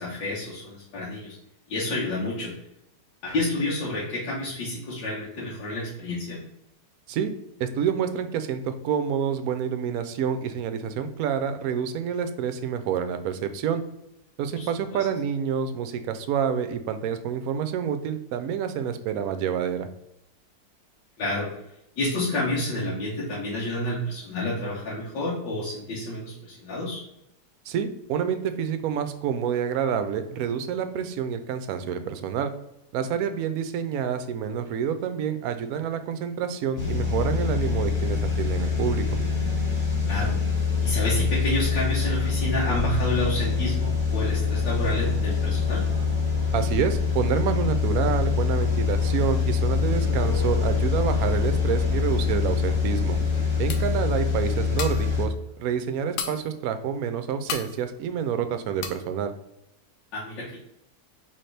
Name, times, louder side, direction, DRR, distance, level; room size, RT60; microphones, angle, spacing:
voice 1, 0.0-1.4 1.7-2.5 3.2-6.4 14.5-15.0 21.2-21.5 22.0-27.0 40.1-40.4 40.8-45.8 60.1-60.6, left 1 dB, 90° left, -7 dB, 1.7 m, -29 dB
voice 2, 7.6-13.8 14.4-19.9 27.7-32.5 32.9-39.0 46.5-53.2 53.6-55.3 55.6-59.3, right 8 dB, 70° right, 9 dB, 0.9 m, -28 dB
sound 1, 36.8-55.3, left 5 dB, 40° left, 1.2 m, -24 dB
sound 2, 53.7-54.1 54.6-55.2 55.5-55.6 55.9-56.6 57.0-57.1 57.5-57.8 58.2-58.4 58.8-59.1, left 6 dB, 70° left, 0.7 m, -34 dB
4.2 x 3.7 x 3.2 m, 0.84 s
omnidirectional pair, 1.9 m